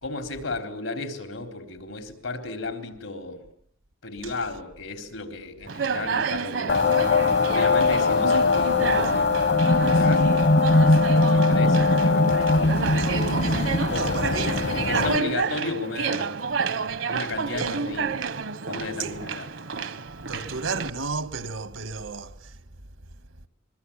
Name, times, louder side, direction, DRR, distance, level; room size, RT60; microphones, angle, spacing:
voice 1, 0.0-3.4 4.0-7.0 7.5-10.3 11.0-12.7 13.9-16.3 17.1-18.2 18.7-19.9, left 2 dB, 90° left, 3.9 m, -34 dB
Conversation, 5.7-20.9, right 5 dB, 70° right, 1.0 m, -30 dB
sound 1, 6.7-15.2, left 3 dB, 55° left, 1.0 m, -21 dB
voice 2, 13.4-14.6 17.6-17.7 20.3-22.6, right 4 dB, 90° right, 1.6 m, -33 dB
25.0 x 22.0 x 8.7 m
head